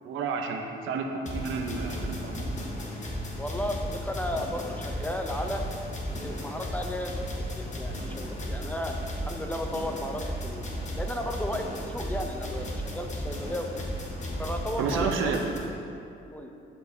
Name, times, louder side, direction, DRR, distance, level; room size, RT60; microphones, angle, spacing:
voice 1, 0.0-2.5 14.8-15.4, right 5 dB, 80° right, 4 dB, 0.7 m, -31 dB
sound 1, 1.3-15.6, equal, 35° left, 1.3 m, -35 dB
voice 2, 3.4-5.6 6.1-8.9 9.2-10.6 10.9-13.8 14.4-15.3 16.3-16.5, left 1 dB, 10° left, 3 dB, 0.5 m, -34 dB
12.0 x 4.6 x 2.7 m, 2.6 s
cardioid pair, 90°, 20 cm